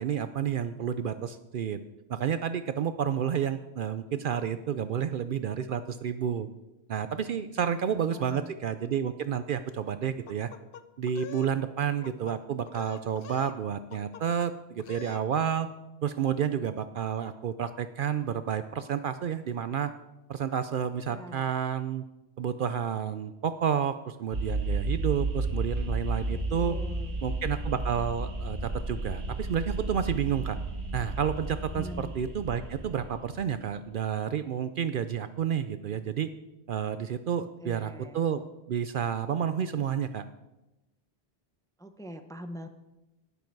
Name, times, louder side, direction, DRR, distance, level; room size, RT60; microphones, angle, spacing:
voice 1, 0.0-1.8 2.1-6.5 6.9-10.5 11.0-15.7 16.0-19.9 20.3-22.0 22.4-26.8 27.2-30.6 30.9-36.3 36.7-40.2, right 8 dB, 60° right, 11 dB, 0.6 m, -30 dB
voice 2, 7.6-8.5 21.1-21.5 26.3-27.2 31.7-32.1 37.4-38.3 41.8-42.7, equal, 5° left, 7 dB, 0.6 m, -44 dB
sound 1, 10.3-11.5 11.8-12.4 12.7-13.6 13.9-14.5 14.8-15.2, left 8 dB, 65° left, 0.8 m, -45 dB
sound 2, 24.3-33.6, right 2 dB, 90° right, 2.7 m, -33 dB
12.0 x 10.0 x 4.6 m, 0.98 s
omnidirectional pair, 1.1 m